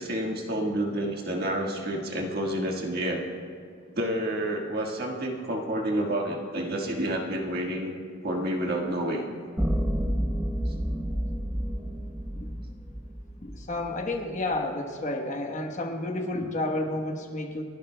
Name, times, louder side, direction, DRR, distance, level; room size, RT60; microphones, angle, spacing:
voice 1, 0.0-3.2 3.9-7.9 8.2-9.3 10.7-10.8, right 1 dB, 45° right, 0 dB, 1.5 m, -29 dB
sound 1, 9.6-13.9, equal, 5° right, 0.6 m, -30 dB
voice 2, 13.4-17.6, left 2 dB, 35° left, 3 dB, 1.1 m, -31 dB
30.0 x 12.0 x 2.2 m, 2.2 s
head